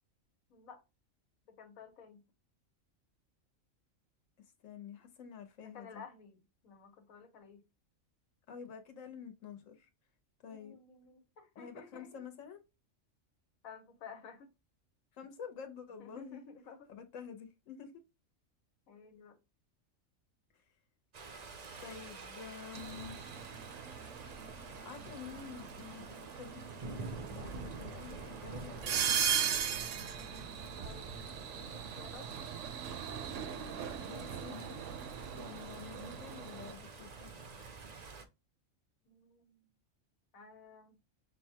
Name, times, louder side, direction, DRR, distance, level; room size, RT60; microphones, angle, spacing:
voice 1, 0.5-0.8 1.5-2.2 5.6-7.6 10.5-12.1 13.6-14.5 16.0-16.8 18.9-19.4 30.8-32.3 39.0-39.7 40.3-41.0, left 5 dB, 85° left, 1.4 m, -54 dB
voice 2, 4.6-6.0 8.5-9.9 10.4-10.8 11.6-12.6 15.1-16.5 16.9-18.0 21.8-23.2 24.8-29.4 34.0-34.8 35.3-37.3, left 7 dB, 70° left, 1.3 m, -49 dB
sound 1, 21.1-38.2, right 4 dB, 50° right, 0.5 m, -48 dB
sound 2, 22.7-36.7, right 8 dB, 70° right, 0.9 m, -39 dB
6.0 x 2.3 x 2.8 m
omnidirectional pair, 1.4 m